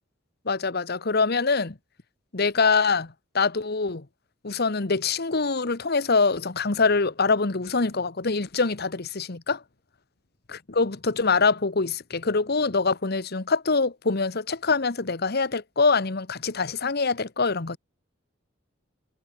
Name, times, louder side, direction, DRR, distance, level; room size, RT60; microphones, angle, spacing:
voice 1, 0.4-1.7 2.3-4.0 4.4-9.6 10.5-17.8, left 4 dB, 55° left, 1.2 m, -24 dB
head